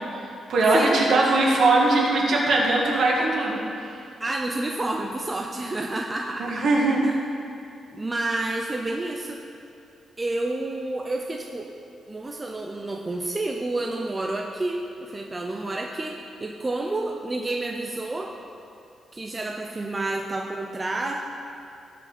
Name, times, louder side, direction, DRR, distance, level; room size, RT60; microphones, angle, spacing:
voice 1, 0.5-3.6 6.4-7.0, right 2 dB, 55° right, -2 dB, 1.9 m, -20 dB
voice 2, 4.2-6.7 7.0-7.2 7.9-9.4 10.2-11.7 12.1-18.3 19.1-21.2, right 2 dB, 20° right, 1 dB, 0.5 m, -29 dB
17.5 x 5.9 x 4.3 m, 2.6 s
wide cardioid pair, 160°, 0 cm